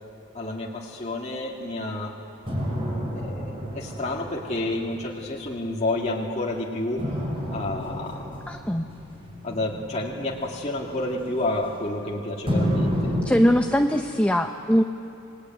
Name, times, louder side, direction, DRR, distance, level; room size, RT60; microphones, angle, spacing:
voice 1, 0.3-2.1 3.1-7.0 7.5-8.3 9.4-13.2, left 2 dB, 30° left, -3 dB, 2.1 m, -30 dB
sound 1, 2.5-6.1 7.0-12.0 12.5-13.2, equal, 25° right, 6.0 m, -31 dB
voice 2, 8.5-8.9 13.2-14.8, equal, 5° left, 5 dB, 0.6 m, -21 dB
26.5 x 20.5 x 9.3 m, 2.8 s
head